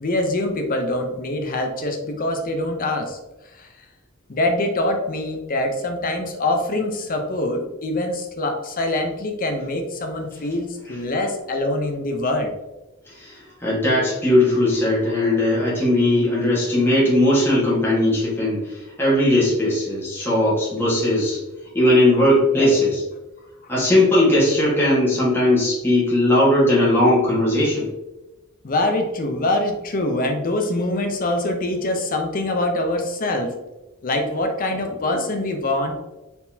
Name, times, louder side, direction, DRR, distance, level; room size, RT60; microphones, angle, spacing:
voice 1, 0.0-3.2 3.5-3.7 4.3-12.5 22.5-22.7 23.6-23.7 28.6-33.6 34.0-35.9, left 1 dB, 40° left, 4 dB, 0.7 m, -24 dB
voice 2, 13.1-21.4 21.7-23.0 23.7-27.9, left 1 dB, 10° left, -8 dB, 1.4 m, -18 dB
4.2 x 4.0 x 2.7 m, 1.1 s
head